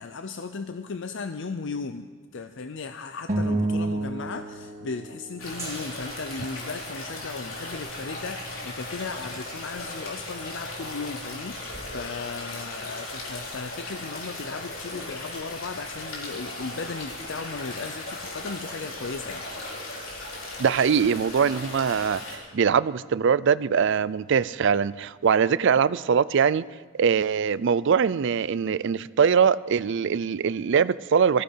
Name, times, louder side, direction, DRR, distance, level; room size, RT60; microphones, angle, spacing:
voice 1, 0.0-19.5, left 4 dB, 65° left, 9 dB, 0.6 m, -36 dB
sound 1, 3.3-5.9, right 2 dB, 40° right, 2.1 m, -29 dB
sound 2, 5.4-22.4, left 2 dB, 90° left, 4.0 m, -37 dB
Gong, 5.6-11.5, right 3 dB, 15° right, 2.7 m, -48 dB
voice 2, 20.6-26.6 27.0-31.4, right 6 dB, 65° right, 18 dB, 0.4 m, -22 dB
20.5 x 14.5 x 4.5 m, 1.5 s
head